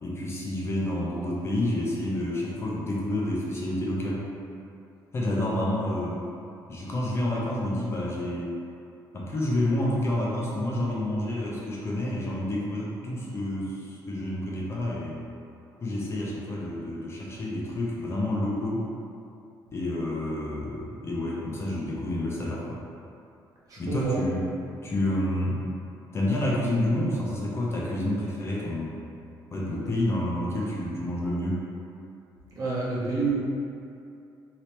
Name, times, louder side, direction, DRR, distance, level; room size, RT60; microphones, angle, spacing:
voice 1, 0.0-4.3 5.1-6.2 6.7-8.5 9.1-15.2 15.8-18.9 19.7-22.8 23.8-24.5 24.8-25.7 26.1-29.0 29.5-31.7, left 1 dB, 30° left, -5 dB, 0.6 m, -29 dB
voice 2, 23.7-24.2 32.5-33.3, right 3 dB, 45° right, -7 dB, 0.9 m, -28 dB
2.9 x 2.7 x 3.2 m, 2.6 s
cardioid pair, 115°, 8 cm